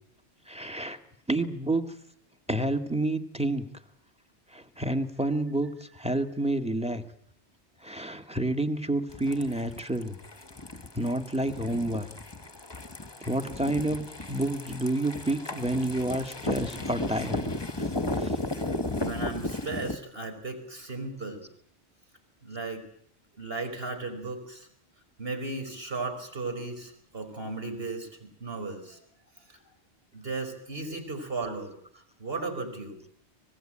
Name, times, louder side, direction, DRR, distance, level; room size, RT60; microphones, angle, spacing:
voice 1, 0.5-1.0 1.3-1.8 2.5-3.7 4.5-7.0 7.8-10.2 10.9-12.1 13.2-17.4 17.8-17.9 18.2-18.4 30.9-31.0, right 1 dB, 5° right, 6 dB, 2.0 m, -29 dB
sound 1, 9.1-19.9, left 2 dB, 25° left, 1.2 m, -34 dB
voice 2, 19.0-21.5 22.4-22.9 23.3-24.7 25.2-29.0 29.5-29.6 30.1-33.0, right 3 dB, 55° right, 6 dB, 5.5 m, -36 dB
25.0 x 20.0 x 9.0 m, 0.65 s
omnidirectional pair, 1.2 m